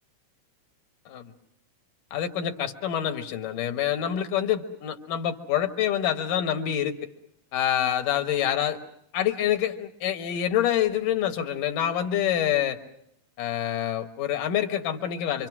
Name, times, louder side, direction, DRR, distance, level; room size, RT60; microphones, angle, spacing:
voice 1, 2.1-6.9 7.5-8.8 9.1-12.8 13.4-15.5, left 10 dB, 85° left, 7 dB, 3.0 m, -26 dB
27.0 x 25.5 x 6.1 m, 0.74 s
omnidirectional pair, 3.7 m